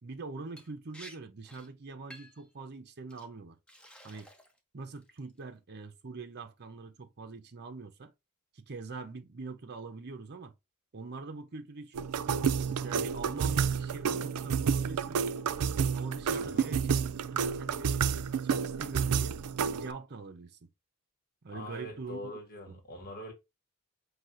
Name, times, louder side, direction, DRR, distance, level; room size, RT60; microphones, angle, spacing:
voice 1, 0.0-3.6 4.0-4.3 4.7-8.1 8.5-10.5 10.9-12.1 12.7-15.2 15.9-19.4 19.7-20.7 21.4-22.3 22.7-22.8, right 3 dB, 50° right, 0.7 m, -43 dB
Liquid, 0.6-0.7 0.9-1.2 1.4-1.7 2.1-2.4 3.1-3.3 3.7-4.6 5.0-5.4, equal, 5° left, 0.8 m, -51 dB
sound 1, 11.9-19.9, right 6 dB, 90° right, 0.4 m, -30 dB
voice 2, 21.5-23.3, left 1 dB, 45° left, 1.6 m, -43 dB
6.0 x 2.7 x 2.5 m
head